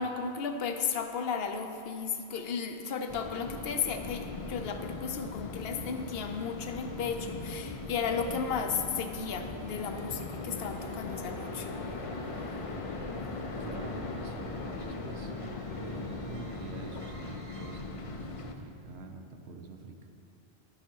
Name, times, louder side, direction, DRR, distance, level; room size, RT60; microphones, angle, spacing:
voice 1, 0.0-11.7, left 6 dB, 70° left, 6 dB, 0.8 m, -34 dB
sound 1, 3.1-18.5, left 3 dB, 40° left, 0.5 m, -39 dB
sound 2, 8.5-17.8, right 2 dB, 55° right, 1.0 m, -49 dB
voice 2, 13.6-15.3 15.8-20.1, right 3 dB, 75° right, 4 dB, 1.1 m, -46 dB
12.0 x 5.8 x 4.6 m, 2.6 s
omnidirectional pair, 1.1 m